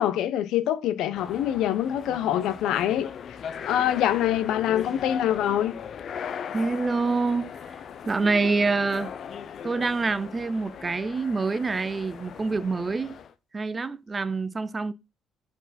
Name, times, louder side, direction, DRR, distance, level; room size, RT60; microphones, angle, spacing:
voice 1, 0.0-3.1 3.6-5.7, left 11 dB, 75° left, 0.7 m, -25 dB
sound 1, 1.1-13.3, left 7 dB, 40° left, 0.5 m, -38 dB
voice 2, 6.5-7.5 8.1-9.1 9.6-13.2 13.5-14.9, right 3 dB, 20° right, 0.4 m, -26 dB
7.8 x 4.7 x 4.2 m
cardioid pair, 170°, 0 cm